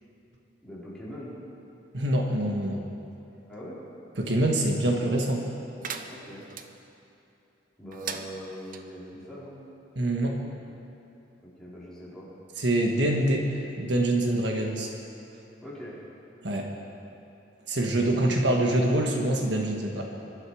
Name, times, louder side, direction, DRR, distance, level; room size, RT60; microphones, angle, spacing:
voice 1, 0.6-1.3 3.5-3.8 6.1-6.4 7.8-9.6 11.4-12.3 15.6-15.9 18.5-18.9, equal, 5° left, -9 dB, 4.4 m, -42 dB
voice 2, 1.9-2.8 4.2-5.5 9.9-10.5 12.6-13.5 13.8-14.9 16.4-16.7 17.7-20.0, right 1 dB, 75° right, 1 dB, 1.6 m, -25 dB
sound 1, 5.8-6.7 7.9-8.8, right 6 dB, 50° right, 0.8 m, -38 dB
23.0 x 12.0 x 5.0 m, 2.9 s
head